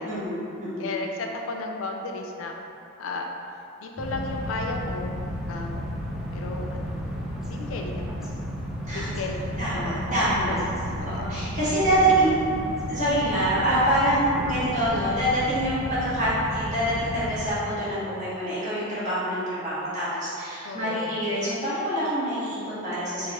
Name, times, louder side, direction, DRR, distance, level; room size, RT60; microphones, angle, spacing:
voice 1, 0.1-0.9 8.9-9.1 9.6-10.6 11.2-12.3 12.9-23.3, right 1 dB, 35° right, -11 dB, 1.3 m, -25 dB
voice 2, 0.8-2.6 3.0-3.3 3.8-5.2 5.5-5.8 6.3-7.0 7.5-8.4 8.9-10.0 10.5-11.3 12.1-12.6 14.0-14.1 14.4-14.9 20.6-21.3, left 3 dB, 75° left, 2 dB, 0.4 m, -34 dB
sound 1, 4.0-17.5, equal, ahead, 0.4 m, -33 dB
4.1 x 2.4 x 3.6 m, 2.7 s
head